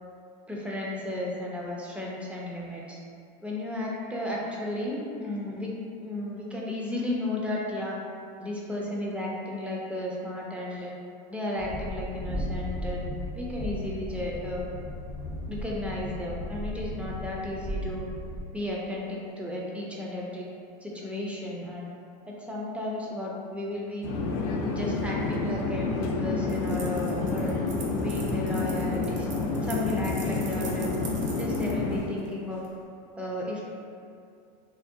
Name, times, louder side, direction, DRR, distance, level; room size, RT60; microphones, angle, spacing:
voice 1, 0.5-3.0 3.4-5.7 6.0-8.0 8.4-10.9 11.3-14.7 15.5-18.0 18.5-20.4 20.8-21.9 22.3-24.1 24.7-27.6 27.9-29.3 29.6-31.0 31.4-32.6 33.2-33.6, left 1 dB, 5° right, -4 dB, 0.4 m, -34 dB
Train, 11.6-18.4, equal, 35° right, 0.7 m, -35 dB
Conversation / Chatter / Fixed-wing aircraft airplane, 24.0-32.0, left 3 dB, 60° left, 0.4 m, -29 dB
sound 1, 26.5-32.7, right 4 dB, 85° right, 0.5 m, -45 dB
2.6 x 2.1 x 2.5 m, 2.4 s
hypercardioid pair, 105°, 21 cm